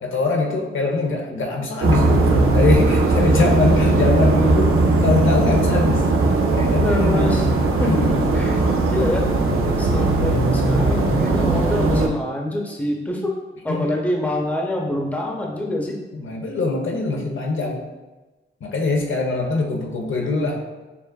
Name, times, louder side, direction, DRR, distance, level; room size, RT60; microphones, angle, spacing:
voice 1, 0.0-6.1 6.6-7.3 7.8-8.2 9.6-10.1 13.7-13.9 16.1-17.8 18.6-20.6, left 3 dB, 70° left, 1 dB, 0.7 m, -23 dB
sound 1, 1.8-12.1, right 2 dB, 85° right, 0.5 m, -18 dB
voice 2, 6.7-7.5 7.8-8.0 8.3-8.6 8.9-9.3 9.8-13.3 13.6-16.0, left 1 dB, 5° left, -1 dB, 0.6 m, -25 dB
6.8 x 2.4 x 2.3 m, 1.1 s
wide cardioid pair, 105°, 21 cm